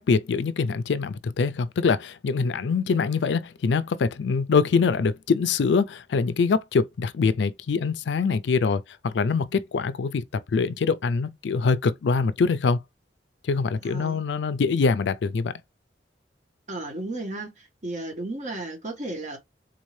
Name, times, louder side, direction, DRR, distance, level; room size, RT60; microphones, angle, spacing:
voice 1, 0.0-12.8 13.4-15.5, left 5 dB, 90° left, 0.4 m, -24 dB
voice 2, 13.8-14.2 16.7-19.4, right 2 dB, 45° right, 1.2 m, -34 dB
3.9 x 2.6 x 3.2 m
head